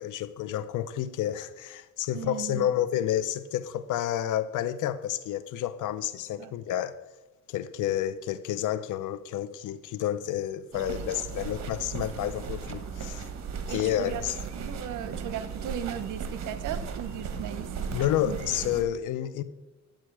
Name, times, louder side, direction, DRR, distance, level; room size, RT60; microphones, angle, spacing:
voice 1, 0.0-7.0 7.5-13.3 13.7-14.3 17.9-19.4, left 11 dB, 85° left, 0.7 m, -30 dB
voice 2, 2.1-2.7 6.4-6.5 13.7-14.2 14.5-17.7 18.2-18.4, right 9 dB, 80° right, 0.9 m, -36 dB
sound 1, 10.7-18.8, right 6 dB, 60° right, 1.4 m, -36 dB
10.5 x 7.5 x 4.7 m
cardioid pair, 90°, 30 cm